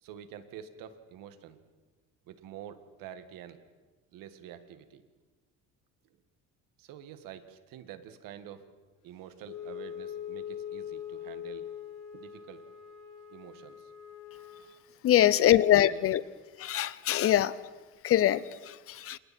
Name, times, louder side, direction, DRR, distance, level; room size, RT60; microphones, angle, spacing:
voice 1, 0.0-1.6 2.3-3.6 4.1-5.0 6.8-8.7 9.0-11.7 12.1-12.6 13.3-13.9 15.2-16.0, right 10 dB, 75° right, 1.9 m, -47 dB
Wind instrument woodwind instrument, 9.4-14.7, left 9 dB, 70° left, 3.0 m, -42 dB
voice 2, 15.0-16.2 16.6-17.6 18.0-19.2, left 12 dB, 40° left, 0.6 m, -24 dB
28.5 x 28.0 x 4.4 m
cardioid pair, 170°, 34 cm